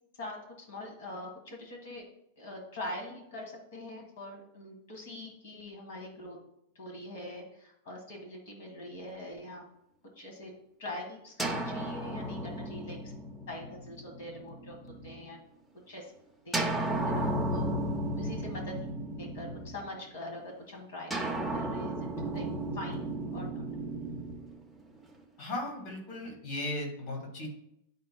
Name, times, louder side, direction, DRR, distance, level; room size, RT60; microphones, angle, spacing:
voice 1, 0.7-2.0 2.4-6.4 6.7-9.6 10.1-10.5 10.8-13.1 13.5-15.4 15.9-16.1 16.4-17.8 18.2-18.9 19.2-21.1 21.5-22.1 22.3-22.5 22.7-23.1 23.3-23.6, left 1 dB, 70° left, 2 dB, 1.6 m, -43 dB
sound 1, 11.4-15.2 16.5-20.1 21.1-25.2, right 1 dB, ahead, 0.5 m, -34 dB
voice 2, 25.4-27.5, left 1 dB, 40° left, 0 dB, 1.8 m, -36 dB
10.5 x 4.3 x 2.2 m, 0.76 s
supercardioid pair, 165°, 0 cm